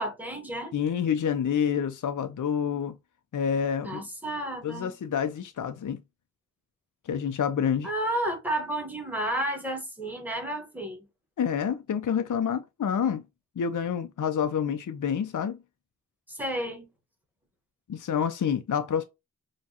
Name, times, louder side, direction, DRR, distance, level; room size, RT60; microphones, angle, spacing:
voice 1, 0.0-0.7 3.8-4.9 7.8-11.0 16.3-16.8, right 1 dB, 5° right, 1.3 m, -31 dB
voice 2, 0.7-3.0 3.3-4.0 4.6-6.0 7.1-7.9 11.4-13.2 13.6-15.6 17.9-19.1, left 8 dB, 65° left, 0.5 m, -28 dB
4.5 x 2.2 x 2.8 m
wide cardioid pair, 60°, 34 cm